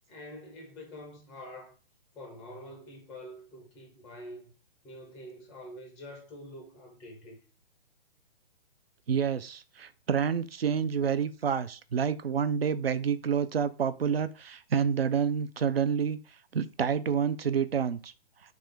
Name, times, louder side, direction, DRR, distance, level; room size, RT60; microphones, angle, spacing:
voice 1, 0.1-1.7 2.1-4.5 4.8-7.4, left 1 dB, 5° left, 0.4 m, -46 dB
voice 2, 9.1-16.2 16.5-18.1, right 7 dB, 75° right, 0.5 m, -28 dB
3.7 x 3.2 x 3.3 m
figure-of-eight pair, 125°, 30 cm